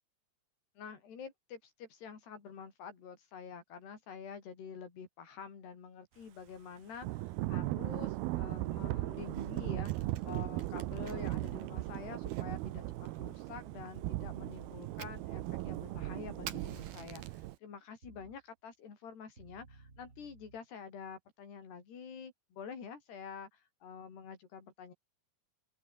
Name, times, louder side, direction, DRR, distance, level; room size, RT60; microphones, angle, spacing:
voice 1, 0.8-24.9, left 6 dB, 90° left, 6.8 m, -48 dB
Thunder / Rain, 7.0-17.6, right 18 dB, 80° right, 2.7 m, -38 dB
Fire, 9.2-17.6, right 10 dB, 60° right, 3.5 m, -54 dB
sound 1, 16.7-17.2 18.0-18.4 19.4-20.6, right 3 dB, 20° right, 3.5 m, -57 dB
open air
omnidirectional pair, 4.6 m